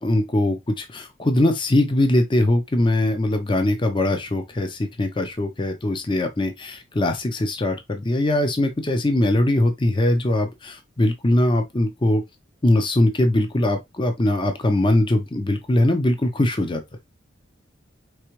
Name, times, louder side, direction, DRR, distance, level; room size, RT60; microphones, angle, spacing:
voice 1, 0.0-12.2 12.6-16.8, left 1 dB, 25° left, 0.6 m, -21 dB
4.7 x 3.4 x 3.0 m
head